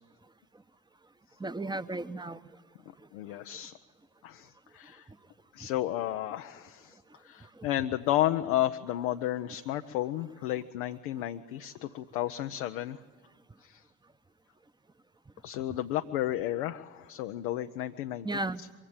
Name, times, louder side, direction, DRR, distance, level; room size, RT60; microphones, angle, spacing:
voice 1, 1.4-2.5 3.0-3.1 4.8-5.2 5.6-5.7 7.1-7.7 18.2-18.6, right 2 dB, 10° right, 13 dB, 0.9 m, -36 dB
voice 2, 3.1-3.8 4.2-5.1 5.5-7.0 7.2-13.0 13.6-13.8 15.4-18.3, left 13 dB, 70° left, 7 dB, 0.7 m, -32 dB
23.5 x 16.5 x 8.8 m, 1.5 s
figure-of-eight pair, 40°, 44 cm